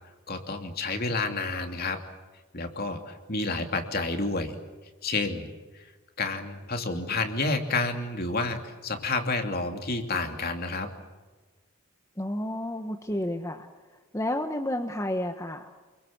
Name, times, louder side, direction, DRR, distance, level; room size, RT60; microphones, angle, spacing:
voice 1, 0.3-2.0 2.5-4.6 5.0-5.8 6.2-10.9, left 3 dB, 45° left, 5 dB, 2.8 m, -30 dB
voice 2, 12.2-15.7, left 1 dB, 15° left, 5 dB, 1.1 m, -31 dB
29.0 x 23.0 x 7.4 m, 1.3 s
head